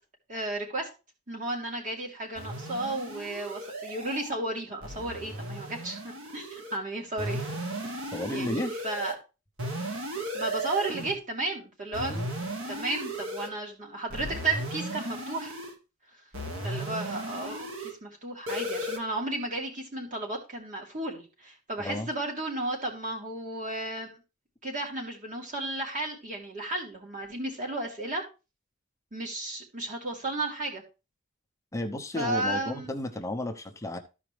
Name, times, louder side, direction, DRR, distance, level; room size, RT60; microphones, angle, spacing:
voice 1, 0.3-0.9 1.3-7.5 8.3-9.1 10.3-12.1 12.7-15.5 16.6-24.2 24.6-28.2 29.1-30.8 32.2-32.9, right 2 dB, 40° right, 0 dB, 2.8 m, -33 dB
sound 1, 2.4-4.3 4.8-6.8 7.2-9.1 9.6-11.2 11.9-13.5 14.1-15.8 16.3-17.9 18.5-19.0, right 1 dB, 80° right, 1.8 m, -35 dB
voice 2, 8.1-8.7 12.0-12.3 21.8-22.1 31.7-34.0, left 1 dB, 15° left, 5 dB, 0.8 m, -33 dB
14.0 x 5.0 x 3.3 m, 0.29 s
head